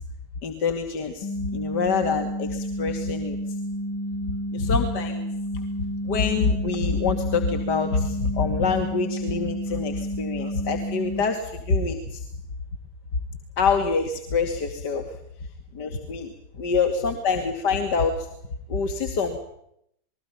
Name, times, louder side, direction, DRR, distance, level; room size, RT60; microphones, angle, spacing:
voice 1, 0.4-3.4 4.5-5.3 6.1-12.2 13.6-15.2 15.7-16.3 16.6-18.3 18.7-19.4, left 5 dB, 50° left, 6 dB, 2.2 m, -25 dB
sound 1, 1.2-11.2, equal, 65° left, 3.9 m, -31 dB
28.0 x 21.5 x 5.8 m, 0.75 s
figure-of-eight pair, 90°, 0 cm